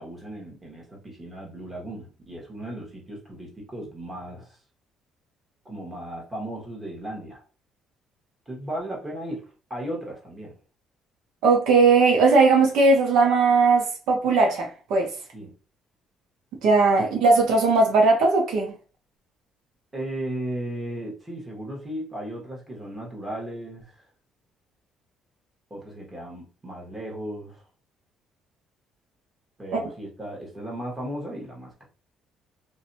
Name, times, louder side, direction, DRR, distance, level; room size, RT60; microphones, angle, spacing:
voice 1, 0.0-4.6 5.6-7.4 8.5-10.5 15.3-15.5 19.9-24.0 25.7-27.6 29.6-31.8, right 1 dB, 15° right, 1.1 m, -36 dB
voice 2, 11.4-15.1 16.6-18.7 29.7-29.8, right 3 dB, 85° right, 0.7 m, -18 dB
2.6 x 2.2 x 2.7 m
cardioid pair, 105°, 0 cm